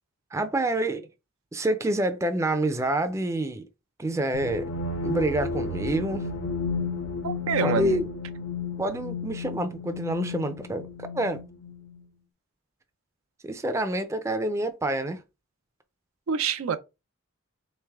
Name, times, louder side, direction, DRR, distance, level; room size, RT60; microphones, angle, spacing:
voice 1, 0.3-1.1 1.5-3.6 4.0-4.7 5.0-6.3 7.6-8.1 8.8-11.4 13.4-15.2, right 1 dB, 15° right, 0.4 m, -27 dB
sound 1, 4.3-12.0, left 4 dB, 90° left, 0.8 m, -32 dB
voice 2, 7.2-8.0 16.3-16.8, right 6 dB, 90° right, 0.5 m, -27 dB
3.3 x 3.1 x 3.4 m
head